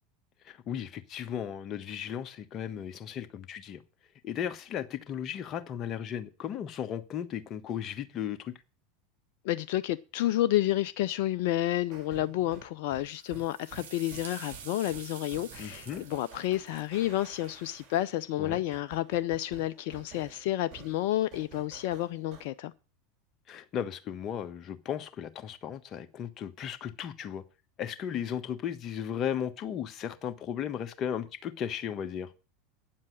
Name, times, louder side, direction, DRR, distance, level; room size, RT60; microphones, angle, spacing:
voice 1, 0.5-3.8 4.2-8.5 15.6-16.0 18.4-18.6 23.5-27.4 27.8-32.3, left 9 dB, 40° left, 1.2 m, -35 dB
voice 2, 9.4-22.7, left 14 dB, 60° left, 0.5 m, -30 dB
sound 1, 11.9-22.5, right 7 dB, 45° right, 5.7 m, -52 dB
sound 2, 13.1-18.0, right 7 dB, 70° right, 1.7 m, -48 dB
9.5 x 7.5 x 7.8 m
figure-of-eight pair, 80°, 0 cm